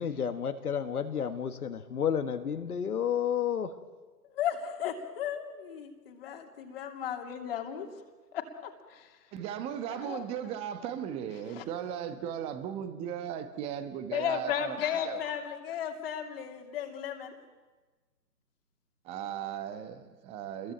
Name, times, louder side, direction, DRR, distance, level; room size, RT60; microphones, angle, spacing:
voice 1, 0.0-3.7, left 8 dB, 60° left, 7 dB, 1.8 m, -31 dB
voice 2, 4.3-7.9 8.3-9.1 9.9-10.3 11.5-11.6 14.1-17.4, left 9 dB, 35° left, 4 dB, 2.8 m, -35 dB
voice 3, 9.3-14.8 15.0-15.2 19.0-20.7, right 9 dB, 10° right, 10 dB, 1.1 m, -37 dB
28.5 x 22.0 x 9.0 m, 1.3 s
figure-of-eight pair, 145°, 50 cm